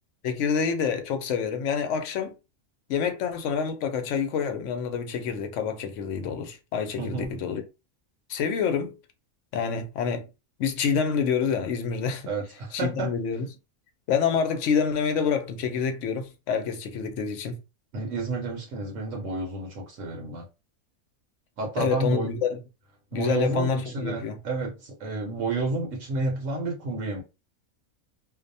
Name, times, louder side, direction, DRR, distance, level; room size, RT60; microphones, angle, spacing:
voice 1, 0.2-2.3 2.9-7.6 8.3-9.0 9.5-10.3 10.6-12.3 12.7-13.5 14.1-17.6 21.8-22.6 23.1-24.4, left 6 dB, 70° left, 0.8 m, -27 dB
voice 2, 7.0-7.4 12.3-13.1 17.9-20.5 21.6-22.3 23.1-27.2, right 3 dB, 70° right, 1.0 m, -30 dB
2.5 x 2.0 x 2.6 m
omnidirectional pair, 1.4 m